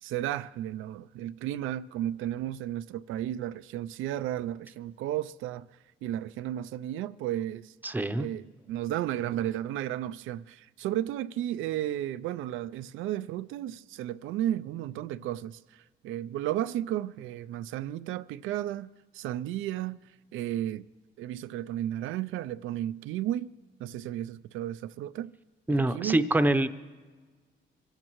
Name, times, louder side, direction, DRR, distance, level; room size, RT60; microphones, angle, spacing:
voice 1, 0.0-5.7 6.0-7.7 8.2-20.0 20.3-20.9 21.2-23.5 23.8-25.3 25.7-26.2, right 12 dB, 85° right, 0.4 m, -33 dB
voice 2, 7.8-8.3 25.7-26.7, right 1 dB, 10° right, 0.7 m, -25 dB
24.0 x 15.5 x 3.0 m
cardioid pair, 90°, 20 cm